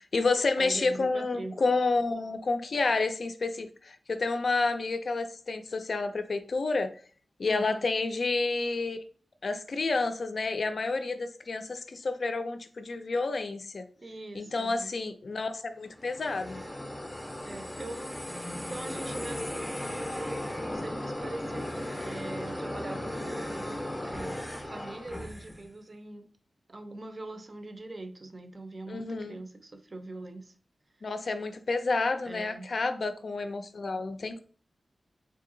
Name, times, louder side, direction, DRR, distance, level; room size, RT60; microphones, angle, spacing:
voice 1, 0.0-6.9 7.4-9.0 9.4-13.9 14.3-16.6 28.9-29.4 31.0-34.4, left 3 dB, 55° left, 8 dB, 0.4 m, -30 dB
voice 2, 0.6-1.6 7.5-7.9 14.0-14.9 17.4-18.2 18.5-24.4 24.7-26.3 26.7-30.5 32.2-32.7, right 2 dB, 35° right, 7 dB, 0.5 m, -42 dB
sound 1, 15.9-25.7, left 1 dB, 10° left, 0.6 m, -36 dB
3.8 x 2.7 x 3.8 m, 0.41 s
wide cardioid pair, 140°, 0 cm